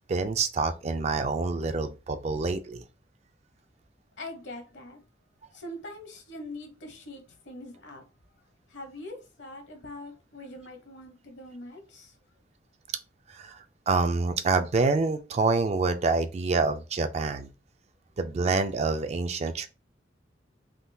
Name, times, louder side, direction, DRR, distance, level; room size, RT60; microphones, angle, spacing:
voice 1, 0.1-2.8 13.3-13.6 13.9-17.5 18.2-19.7, right 4 dB, 35° right, 0.3 m, -27 dB
voice 2, 4.2-5.0 5.5-8.0 8.7-12.2, left 1 dB, 90° left, 1.0 m, -43 dB
3.6 x 2.7 x 2.2 m
head